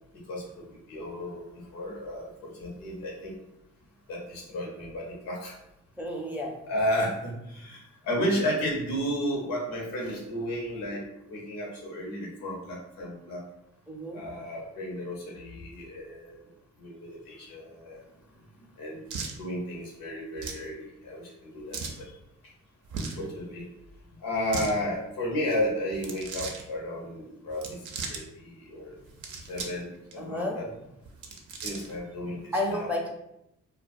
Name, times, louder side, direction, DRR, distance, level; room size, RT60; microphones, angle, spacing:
voice 1, 0.1-3.4 4.1-5.5 6.7-13.4 14.1-16.4 16.8-18.0 18.8-19.0 19.4-22.2 23.0-23.7 24.2-27.8 28.1-29.0 29.4-30.7 31.6-32.9, equal, 85° left, -2 dB, 0.8 m, -33 dB
voice 2, 6.0-6.5 13.9-14.2 30.2-30.6 32.5-33.1, left 1 dB, 5° right, 0 dB, 0.5 m, -31 dB
sound 1, 19.1-19.4 20.4-20.7 21.7-22.0 22.9-23.2 24.3-24.7 25.9-26.6 27.5-28.2 29.0-29.8 30.1-30.2 31.1-32.0, right 4 dB, 65° right, 0.5 m, -37 dB
2.2 x 2.2 x 2.5 m, 0.84 s
supercardioid pair, 55°, 33 cm